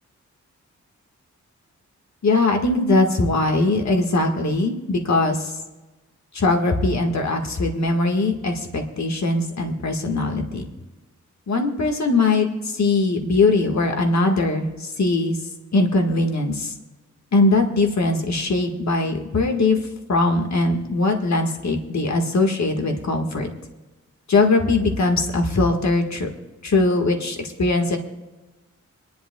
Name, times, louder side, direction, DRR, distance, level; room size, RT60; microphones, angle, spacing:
voice 1, 2.2-5.5 6.3-10.6 11.5-15.4 15.7-16.7 17.3-19.8 20.1-23.5 24.3-26.3 26.6-28.0, left 2 dB, 65° left, 3 dB, 1.7 m, -21 dB
26.5 x 11.0 x 2.3 m, 1.1 s
cardioid pair, 70°, 31 cm